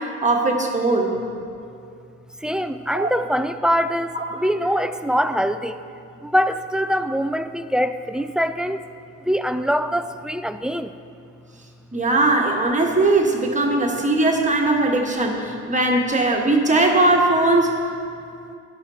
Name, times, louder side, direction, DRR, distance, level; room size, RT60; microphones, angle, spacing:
voice 1, 0.2-1.2 2.9-3.1 4.1-4.2 11.9-17.8, right 2 dB, 25° right, 0 dB, 1.3 m, -19 dB
voice 2, 2.4-5.8 6.2-8.8 9.3-10.9, equal, 5° right, 10 dB, 0.3 m, -23 dB
13.5 x 11.0 x 2.8 m, 2.5 s
cardioid pair, 90°, 30 cm